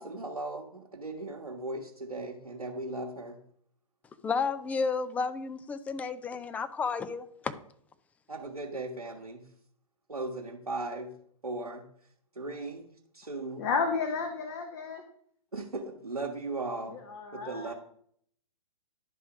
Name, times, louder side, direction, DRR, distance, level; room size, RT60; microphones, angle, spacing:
voice 1, 0.0-3.4 8.3-9.5 10.1-11.1 11.4-11.9 12.4-13.6 15.5-17.0 17.3-17.7, right 2 dB, 85° right, 1.2 m, -37 dB
voice 2, 4.2-7.5, left 5 dB, 10° left, 0.3 m, -32 dB
voice 3, 13.6-15.0 16.9-17.7, left 5 dB, 40° left, 1.1 m, -32 dB
11.0 x 3.7 x 5.8 m
figure-of-eight pair, 115°, 19 cm